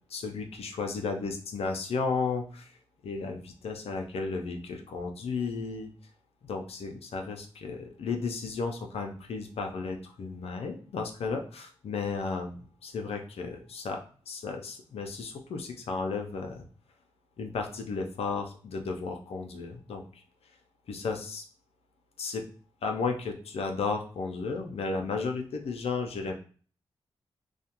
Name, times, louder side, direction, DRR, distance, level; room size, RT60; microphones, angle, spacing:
voice 1, 0.1-2.7 3.0-5.9 6.4-16.6 17.4-20.2 20.9-21.4 22.2-22.5 22.8-26.4, left 4 dB, 75° left, 3 dB, 0.5 m, -34 dB
2.4 x 2.2 x 2.8 m, 0.41 s
supercardioid pair, 45°, 10 cm